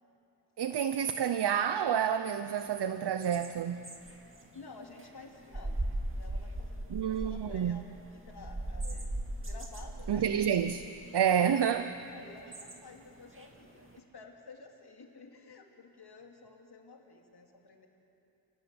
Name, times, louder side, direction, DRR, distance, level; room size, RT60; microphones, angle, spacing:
voice 1, 0.6-3.9 6.9-7.8 10.1-10.9 11.1-11.9, right 8 dB, 80° right, 0.7 m, -29 dB
sound 1, 2.6-14.0, right 1 dB, 30° right, 2.4 m, -40 dB
voice 2, 4.5-7.8 8.1-10.3 11.0-11.2 11.8-17.9, left 4 dB, 75° left, 3.0 m, -52 dB
29.0 x 18.5 x 7.8 m
wide cardioid pair, 65°, 40 cm